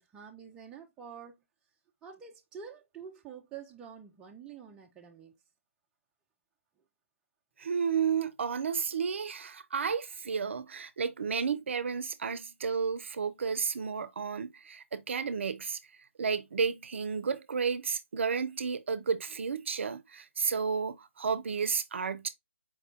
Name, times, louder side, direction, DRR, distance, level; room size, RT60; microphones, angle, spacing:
voice 1, 0.0-1.4 2.0-5.4, right 7 dB, 10° right, 0.4 m, -47 dB
voice 2, 7.6-15.8 16.2-22.3, right 6 dB, 60° right, 0.5 m, -32 dB
4.5 x 2.2 x 3.5 m
figure-of-eight pair, 150°, 7 cm